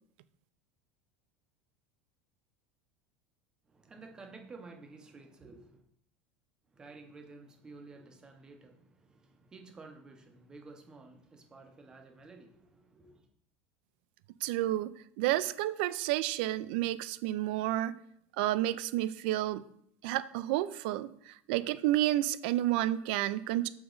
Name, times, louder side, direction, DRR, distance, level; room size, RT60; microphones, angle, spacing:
voice 1, 3.7-5.8 6.7-13.3, right 3 dB, 10° right, 0.6 m, -52 dB
voice 2, 14.4-18.0 18.4-19.6 20.0-23.7, right 14 dB, 60° right, 0.3 m, -30 dB
6.4 x 4.9 x 3.8 m
cardioid pair, 175°, 6 cm